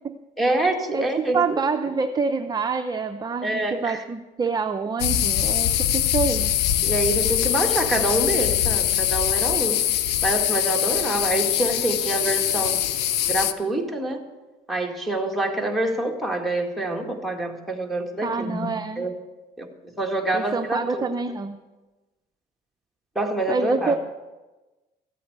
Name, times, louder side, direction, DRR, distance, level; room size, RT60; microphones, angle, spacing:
voice 1, 0.4-1.4 3.4-4.0 6.8-9.8 10.2-12.8 13.3-14.2 14.7-19.1 19.6-19.7 20.0-21.1 23.2-24.0, right 2 dB, ahead, 0 dB, 2.0 m, -26 dB
voice 2, 0.9-6.5 18.2-19.1 20.3-21.6 23.5-24.0, right 4 dB, 25° right, 6 dB, 0.6 m, -26 dB
sound 1, 5.0-13.5, left 11 dB, 90° left, 0.6 m, -23 dB
14.0 x 8.5 x 7.9 m, 1.2 s
cardioid pair, 110°, 17 cm